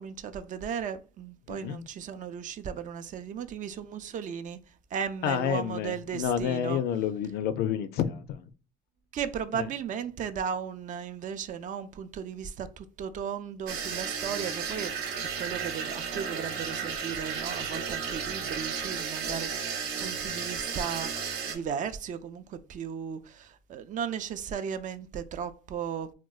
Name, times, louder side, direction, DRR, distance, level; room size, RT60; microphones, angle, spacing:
voice 1, 0.0-4.6 4.9-6.8 9.1-14.9 15.4-21.2 21.5-26.1, right 7 dB, 50° right, 0.4 m, -36 dB
voice 2, 1.5-1.8 5.2-8.4 9.5-9.7, left 9 dB, 70° left, 0.4 m, -29 dB
sound 1, 13.7-21.6, right 6 dB, 85° right, 0.7 m, -33 dB
3.7 x 2.2 x 2.3 m
cardioid pair, 110°, 17 cm